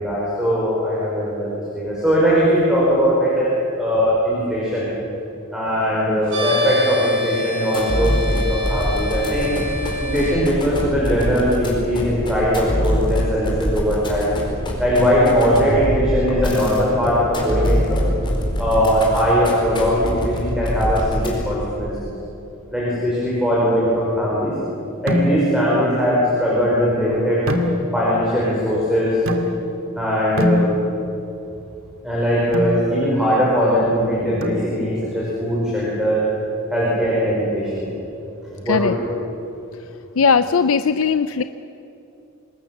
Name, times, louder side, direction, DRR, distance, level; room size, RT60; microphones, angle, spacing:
voice 1, 0.0-4.9 5.5-9.5 10.0-14.3 14.8-18.0 18.6-21.9 22.7-24.6 25.0-27.4 27.9-29.2 29.9-30.7 32.0-36.2 36.7-37.9 38.5-38.9, equal, 5° right, -7 dB, 5.5 m, -20 dB
sound 1, 6.3-10.3, left 1 dB, 65° right, 7.7 m, -26 dB
sound 2, 7.7-21.7, equal, 25° left, 4.4 m, -25 dB
sound 3, 25.1-25.7 27.5-28.2 29.3-29.9 30.4-31.2 32.5-32.9 34.4-35.0, left 1 dB, 85° right, 2.2 m, -23 dB
voice 2, 40.2-41.4, left 5 dB, 75° left, 11 dB, 0.5 m, -18 dB
26.0 x 20.0 x 7.3 m, 2.8 s
head